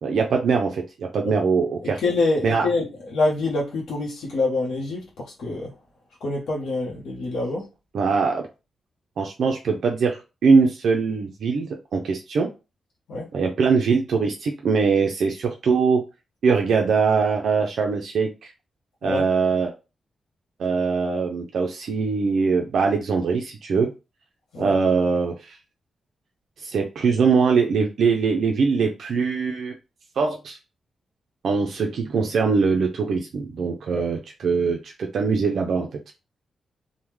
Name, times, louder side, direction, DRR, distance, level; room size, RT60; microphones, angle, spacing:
voice 1, 0.0-2.0 2.4-2.7 7.9-8.5 9.2-12.5 13.3-16.0 16.4-18.5 19.0-19.7 20.6-23.9 24.6-25.6 26.6-29.7 30.2-30.6 31.4-35.9, right 5 dB, 60° right, 0.4 m, -22 dB
voice 2, 2.0-2.9 3.1-5.1 5.4-5.7 6.2-7.7 13.1-13.2 19.0-19.2 24.5-24.7 34.0-34.1, left 2 dB, 90° left, 0.7 m, -25 dB
3.4 x 2.1 x 3.1 m
wide cardioid pair, 175°, 0 cm